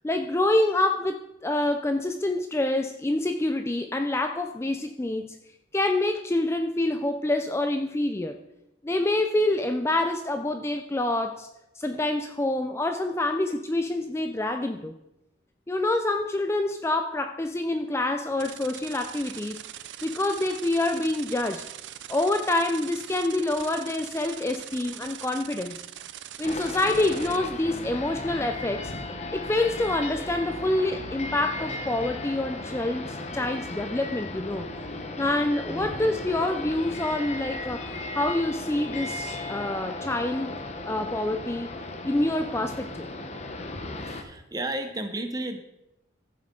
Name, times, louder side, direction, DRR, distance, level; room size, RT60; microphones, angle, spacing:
voice 1, 0.0-5.4 5.7-8.4 8.8-11.5 11.8-14.9 15.7-19.6 20.0-21.6 22.1-25.8 26.4-28.9 29.3-34.7 35.2-40.5 40.9-41.7 42.0-43.1, left 2 dB, 15° left, 6 dB, 0.4 m, -27 dB
sound 1, 18.4-27.4, right 11 dB, 65° right, 0.5 m, -41 dB
sound 2, 26.4-44.2, left 2 dB, 35° left, 0.9 m, -36 dB
voice 2, 35.7-36.2 44.0-45.6, right 1 dB, 20° right, 7 dB, 0.9 m, -33 dB
14.5 x 7.2 x 3.8 m, 0.88 s
head